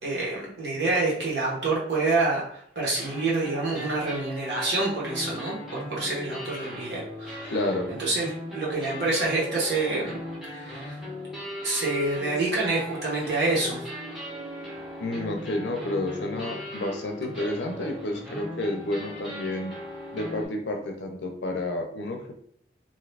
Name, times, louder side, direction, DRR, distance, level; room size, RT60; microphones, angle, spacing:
voice 1, 0.0-7.5 7.9-10.2 10.5-11.0 11.6-13.8, right 3 dB, 60° right, -5 dB, 1.1 m, -27 dB
sound 1, 1.3-1.4 1.9-2.0 3.0-20.5, left 1 dB, ahead, 0.8 m, -38 dB
voice 2, 7.4-7.9 15.0-19.7 20.1-22.3, left 1 dB, 65° left, 3 dB, 0.6 m, -30 dB
2.7 x 2.4 x 3.3 m, 0.66 s
head